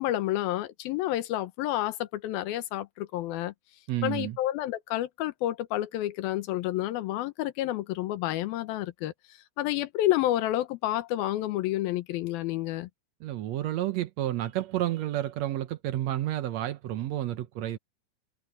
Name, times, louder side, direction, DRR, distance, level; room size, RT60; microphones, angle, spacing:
voice 1, 0.0-3.5 4.0-9.1 9.6-12.9, left 14 dB, 75° left, 2.7 m, -29 dB
voice 2, 3.9-4.4 13.2-17.8, right 13 dB, 85° right, 1.5 m, -30 dB
omnidirectional pair, 4.4 m